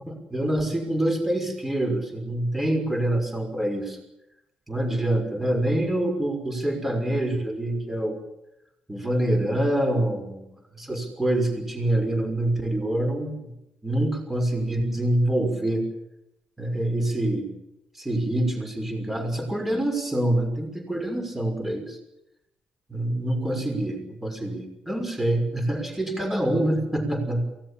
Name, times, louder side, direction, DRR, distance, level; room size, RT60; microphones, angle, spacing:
voice 1, 0.1-4.0 4.7-8.2 8.9-10.4 10.8-13.5 13.8-15.8 16.6-17.5 18.0-22.0 22.9-27.4, right 1 dB, 10° right, 5 dB, 6.1 m, -26 dB
23.5 x 18.5 x 8.8 m, 0.87 s
supercardioid pair, 75°, 3 cm